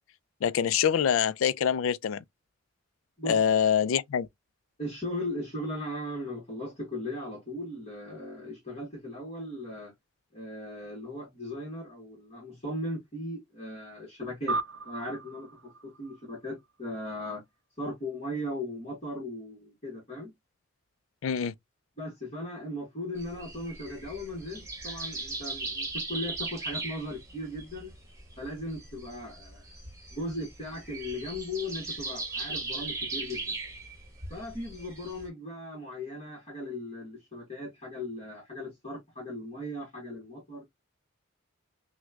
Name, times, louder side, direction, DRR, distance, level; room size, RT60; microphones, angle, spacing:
voice 1, 0.4-2.2 3.3-4.3 21.2-21.5, left 8 dB, 75° left, 0.3 m, -25 dB
voice 2, 4.8-9.9 10.3-14.6 14.8-17.4 17.8-20.3 22.0-27.9 28.4-29.6 30.1-33.5 34.3-40.6, left 1 dB, 30° left, 1.2 m, -37 dB
sound 1, 14.5-17.2, right 3 dB, 65° right, 0.4 m, -37 dB
sound 2, 23.2-35.3, right 3 dB, 15° right, 1.3 m, -38 dB
6.0 x 2.2 x 2.3 m
head